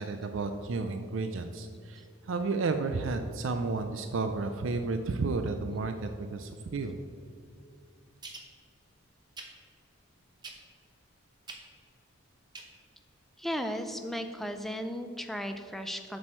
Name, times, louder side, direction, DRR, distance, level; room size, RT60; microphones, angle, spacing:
voice 1, 0.0-7.0, right 3 dB, 65° right, 7 dB, 0.4 m, -32 dB
sound 1, 8.2-8.5 9.4-9.5 10.4-10.8 11.5-11.6 12.5-12.7 13.0-13.1, right 3 dB, 20° right, 0.8 m, -43 dB
voice 2, 13.4-16.2, equal, ahead, 6 dB, 0.4 m, -35 dB
7.5 x 6.2 x 4.4 m, 2.4 s
head